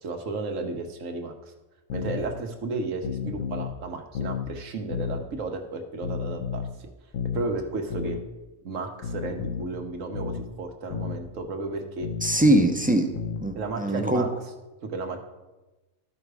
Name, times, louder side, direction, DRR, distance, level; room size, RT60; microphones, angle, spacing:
voice 1, 0.0-1.5 1.9-6.9 7.3-8.2 8.6-12.1 13.6-14.3 14.8-15.2, right 3 dB, 80° right, 5 dB, 1.4 m, -33 dB
sound 1, 1.9-2.2 3.0-3.7 4.1-4.5 4.9-5.2 6.0-6.7 7.1-7.5 7.9-8.2 9.0-9.7 10.1-10.5 10.9-11.2 12.0-12.7 13.1-13.5, left 7 dB, 85° left, 1.3 m, -32 dB
voice 2, 12.2-13.1 13.4-14.2, right 1 dB, 10° right, 5 dB, 0.5 m, -22 dB
12.5 x 5.8 x 4.7 m, 1.1 s
omnidirectional pair, 1.3 m